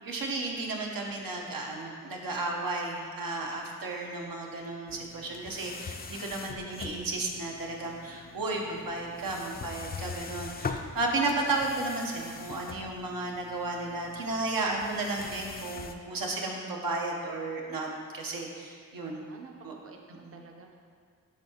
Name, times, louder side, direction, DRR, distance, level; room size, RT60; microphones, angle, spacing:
voice 1, 0.0-17.9 18.1-19.2 19.6-19.7 20.2-20.4, right 2 dB, 85° right, -1 dB, 0.8 m, -33 dB
sound 1, 4.9-15.9, left 4 dB, 30° left, 0.4 m, -43 dB
voice 2, 6.4-6.9 19.0-20.8, right 3 dB, 40° right, 2 dB, 0.6 m, -51 dB
10.5 x 3.6 x 2.8 m, 2.1 s
cardioid pair, 50°, 34 cm